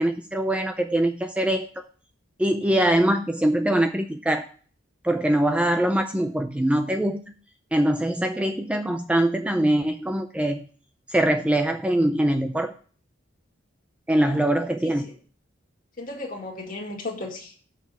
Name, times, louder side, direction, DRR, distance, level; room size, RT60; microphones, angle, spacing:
voice 1, 0.0-1.7 2.4-4.4 5.0-7.2 7.7-10.6 11.1-12.7 14.1-15.1, right 1 dB, 5° right, 6 dB, 0.4 m, -23 dB
voice 2, 16.0-17.6, left 2 dB, 45° left, 0 dB, 2.1 m, -35 dB
7.1 x 5.7 x 5.4 m, 0.42 s
head